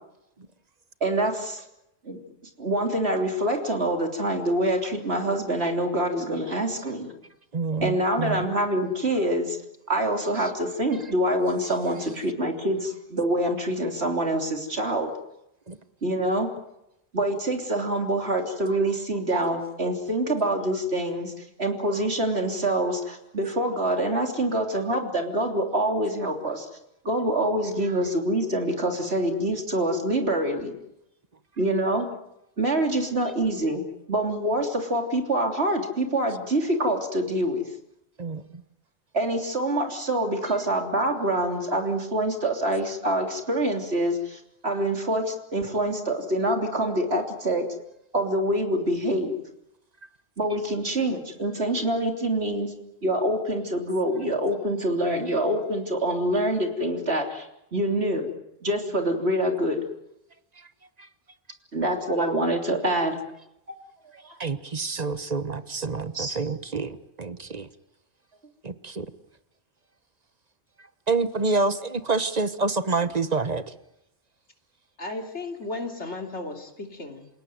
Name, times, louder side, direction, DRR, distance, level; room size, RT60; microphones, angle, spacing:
voice 1, 1.0-1.7 2.0-2.2 2.6-7.1 7.8-9.6 9.9-15.1 16.0-16.5 17.1-26.7 27.1-30.8 31.6-32.1 32.6-33.8 34.1-37.6 39.1-47.7 48.1-49.4 50.4-52.7 53.0-58.3 58.6-59.8 61.7-63.2 64.2-64.3 66.1-66.4, right 1 dB, 65° right, 3 dB, 3.7 m, -25 dB
voice 2, 7.5-8.5 15.7-15.8 38.2-38.4 64.4-67.7 68.6-69.1 71.1-73.6, right 3 dB, 35° right, 12 dB, 1.2 m, -27 dB
voice 3, 75.0-77.3, left 2 dB, 80° left, 3 dB, 3.3 m, -35 dB
28.5 x 17.5 x 9.4 m, 0.86 s
omnidirectional pair, 1.2 m